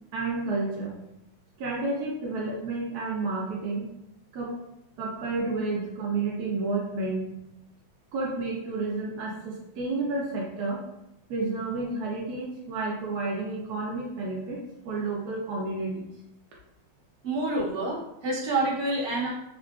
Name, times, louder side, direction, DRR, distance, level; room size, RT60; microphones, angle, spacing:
voice 1, 0.1-1.0 1.6-3.9 4.3-4.6 5.0-7.3 8.1-10.8 11.3-14.6 14.8-16.1, right 3 dB, 80° right, -3 dB, 0.8 m, -30 dB
voice 2, 17.2-19.3, right 2 dB, 60° right, -5 dB, 1.1 m, -28 dB
3.6 x 2.3 x 2.3 m, 0.84 s
omnidirectional pair, 2.3 m